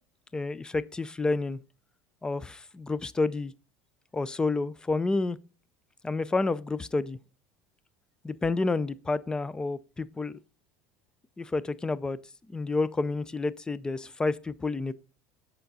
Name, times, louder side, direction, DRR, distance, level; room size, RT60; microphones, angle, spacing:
voice 1, 0.3-1.6 2.2-3.5 4.1-5.4 6.0-7.2 8.2-10.4 11.4-12.2 12.5-14.9, left 3 dB, 10° left, 0.4 m, -29 dB
7.8 x 5.6 x 4.0 m
supercardioid pair, 130°, 7 cm